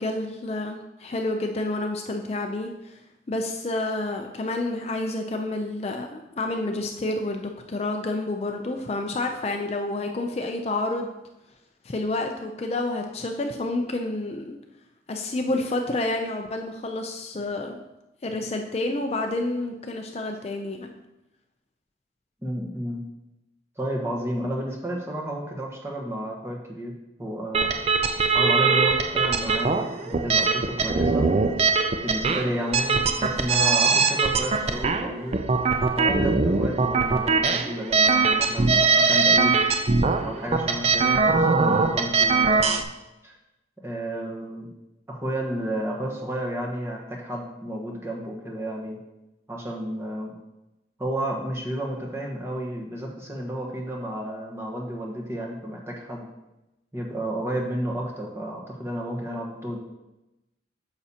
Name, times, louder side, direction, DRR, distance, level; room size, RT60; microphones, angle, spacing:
voice 1, 0.0-11.1 11.8-14.6 15.1-17.8 18.2-20.9, left 2 dB, 35° left, 4 dB, 0.5 m, -29 dB
voice 2, 22.4-23.0 23.8-26.9 27.2-27.7 28.3-31.3 32.0-35.4 36.0-39.6 40.2-42.8 43.2-43.4 43.8-44.7 45.1-49.0 49.5-50.3 51.0-56.3 56.9-59.8, equal, 15° right, -1 dB, 1.2 m, -31 dB
sound 1, 27.5-42.8, right 4 dB, 35° right, 0.4 m, -22 dB
9.1 x 6.8 x 2.8 m, 0.97 s
head